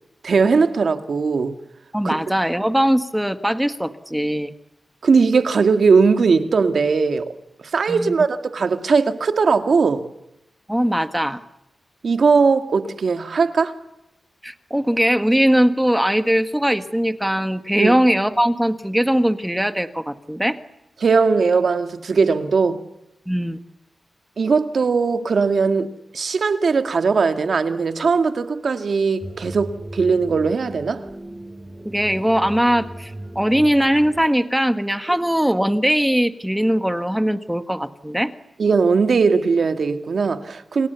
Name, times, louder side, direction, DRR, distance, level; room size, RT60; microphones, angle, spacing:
voice 1, 0.2-1.5 2.0-2.2 5.0-7.3 7.7-10.0 12.0-13.7 17.8-18.0 21.0-22.8 24.4-31.0 38.6-40.9, right 5 dB, 65° right, 2.0 m, -19 dB
voice 2, 1.9-4.5 7.9-8.1 10.7-11.4 14.4-20.6 23.3-23.6 31.8-38.3, equal, 5° right, 1.6 m, -20 dB
sound 1, 29.2-34.2, right 1 dB, 20° right, 3.7 m, -37 dB
28.5 x 28.0 x 7.0 m
wide cardioid pair, 115°, 0 cm